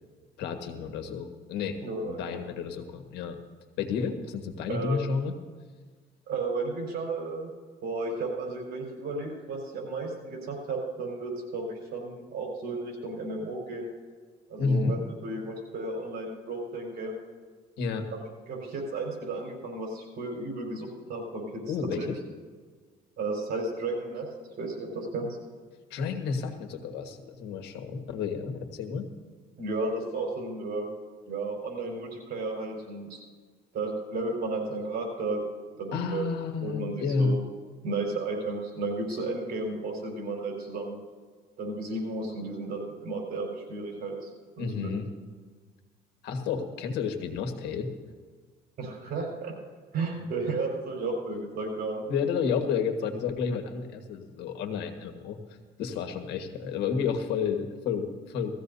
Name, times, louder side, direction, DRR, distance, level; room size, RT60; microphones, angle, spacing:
voice 1, 0.4-1.8 2.0-3.4 3.8-5.3 14.6-15.0 17.8-18.1 21.7-22.2 25.9-29.1 35.9-37.3 44.6-45.1 46.2-47.9 52.1-58.5, left 5 dB, 85° left, 5 dB, 1.6 m, -31 dB
voice 2, 1.8-2.4 4.7-5.0 6.3-7.5 7.8-13.9 14.5-17.1 18.1-22.1 23.2-24.3 24.6-25.3 29.6-30.9 31.3-33.2 33.7-35.4 35.8-36.3 36.6-37.5 37.8-41.0 41.6-44.3 44.6-44.9 48.8-49.5 49.9-52.1, right 3 dB, 65° right, 0 dB, 4.8 m, -33 dB
18.5 x 15.0 x 2.7 m, 1.5 s
cardioid pair, 110°, 17 cm